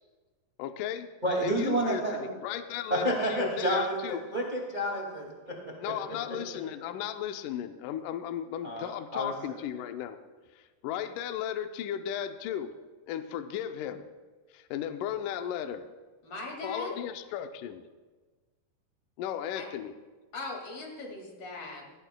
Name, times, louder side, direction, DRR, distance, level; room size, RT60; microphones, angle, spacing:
voice 1, 0.6-1.1 1.4-4.3 5.8-10.2 10.8-12.7 13.1-14.0 14.5-15.9 16.6-17.8 19.2-19.9, left 10 dB, 85° left, 8 dB, 1.8 m, -35 dB
voice 2, 1.2-2.3 2.9-5.9 6.3-6.4 8.6-9.3, right 1 dB, 25° right, -1 dB, 1.0 m, -30 dB
voice 3, 16.2-16.9 19.5-19.7 20.3-21.9, left 2 dB, 40° left, 0 dB, 2.7 m, -39 dB
17.5 x 17.0 x 2.2 m, 1.3 s
omnidirectional pair, 4.5 m